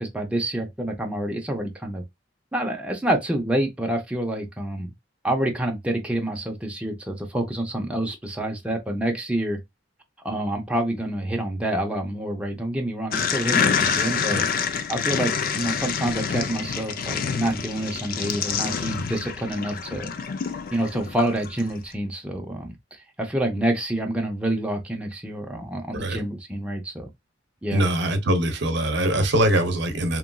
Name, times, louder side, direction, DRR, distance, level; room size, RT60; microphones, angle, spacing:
voice 1, 0.0-2.0 2.5-4.9 5.2-9.6 10.2-14.4 14.9-20.1 20.7-27.1 27.6-27.8, right 1 dB, 5° right, 0.5 m, -27 dB
sound 1, 13.1-21.7, left 6 dB, 50° left, 0.4 m, -27 dB
voice 2, 27.7-30.2, right 1 dB, 65° right, 0.7 m, -22 dB
2.9 x 2.5 x 2.2 m
head